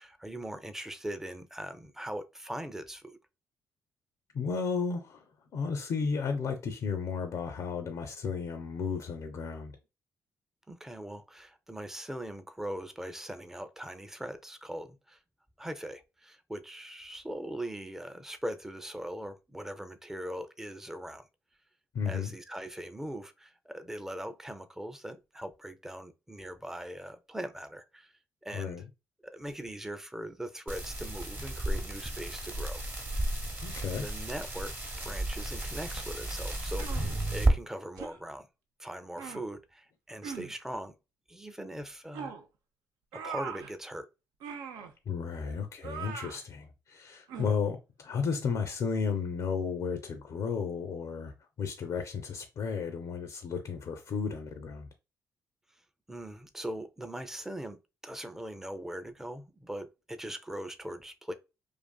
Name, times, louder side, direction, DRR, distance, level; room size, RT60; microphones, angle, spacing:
voice 1, 0.0-3.2 10.7-15.2 15.6-21.3 22.1-28.1 28.4-28.8 29.2-32.8 33.9-34.7 35.0-38.5 38.8-41.0 41.3-42.3 43.1-44.1 56.1-61.3, right 1 dB, 5° right, 0.4 m, -41 dB
voice 2, 4.3-5.2 5.5-9.8 21.9-22.3 28.5-28.9 33.6-34.1 45.1-54.9, left 5 dB, 60° left, 0.4 m, -33 dB
sound 1, 30.7-37.5, right 1 dB, 30° right, 0.8 m, -32 dB
sound 2, 36.8-37.2 38.0-38.2 39.2-39.5 40.2-40.5 42.1-42.4 43.1-43.7 44.4-44.9 45.8-46.4 47.3-47.6, right 6 dB, 80° right, 0.4 m, -41 dB
2.4 x 2.4 x 2.2 m
supercardioid pair, 55°, 7 cm